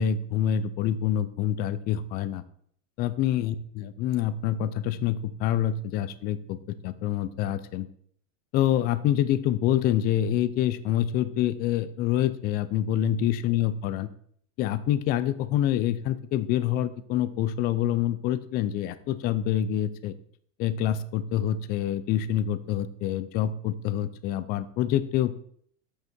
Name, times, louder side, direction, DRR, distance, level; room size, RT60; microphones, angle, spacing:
voice 1, 0.0-2.4 3.0-6.6 6.8-7.9 8.5-14.1 14.6-20.1 20.6-25.3, left 11 dB, 25° left, 15 dB, 0.4 m, -26 dB
8.0 x 6.2 x 4.3 m, 0.62 s
supercardioid pair, 135°, 39 cm